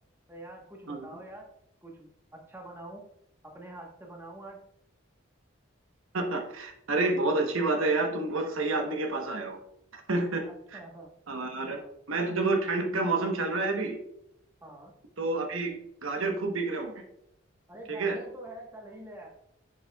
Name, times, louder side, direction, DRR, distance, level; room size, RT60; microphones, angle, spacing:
voice 1, 0.3-1.5 1.8-3.1 3.4-4.6 10.4-11.1 11.6-12.0 14.6-14.9 17.7-19.3, right 1 dB, 10° right, 0 dB, 1.1 m, -45 dB
voice 2, 6.1-9.6 9.9-10.4 10.7-10.8 11.3-11.8 12.1-14.0 15.2-16.9 17.9-18.2, right 3 dB, 80° right, 4 dB, 1.0 m, -29 dB
7.2 x 7.2 x 2.3 m, 0.76 s
head